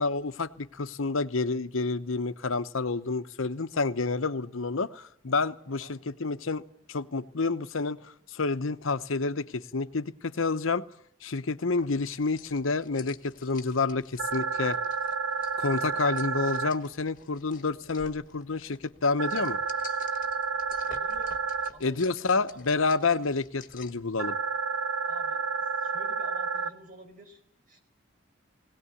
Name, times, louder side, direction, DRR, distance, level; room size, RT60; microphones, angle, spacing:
voice 1, 0.0-6.6 6.9-10.8 11.2-14.8 15.6-19.6 21.8-24.4, left 3 dB, 85° left, 12 dB, 0.9 m, -29 dB
sound 1, 11.8-24.1, left 6 dB, 40° left, 1.6 m, -51 dB
sound 2, 14.2-16.7 19.2-21.7 24.2-26.7, right 5 dB, 85° right, 0.9 m, -30 dB
voice 2, 20.9-21.4 21.7-22.7 25.1-27.4 27.7-27.8, right 1 dB, 40° right, 4 dB, 4.7 m, -50 dB
20.0 x 18.0 x 9.8 m, 0.65 s
head